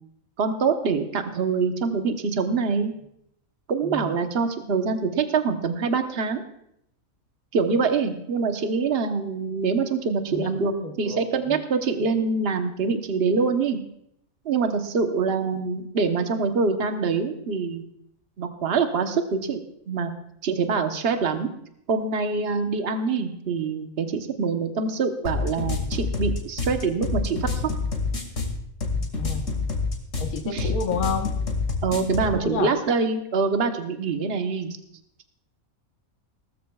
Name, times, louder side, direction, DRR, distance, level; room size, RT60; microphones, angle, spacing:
voice 1, 0.4-2.9 3.7-6.4 7.5-13.8 14.4-17.8 18.4-20.1 20.4-21.5 21.9-27.5 30.4-30.7 31.8-34.8, right 4 dB, 45° right, 6 dB, 1.2 m, -25 dB
voice 2, 3.8-4.2 10.3-11.6 29.0-29.4 30.2-31.4 32.3-32.7, left 5 dB, 80° left, 4 dB, 1.6 m, -31 dB
sound 1, 25.2-32.3, left 4 dB, 60° left, 2.7 m, -27 dB
19.0 x 13.5 x 2.4 m, 0.76 s
omnidirectional pair, 1.5 m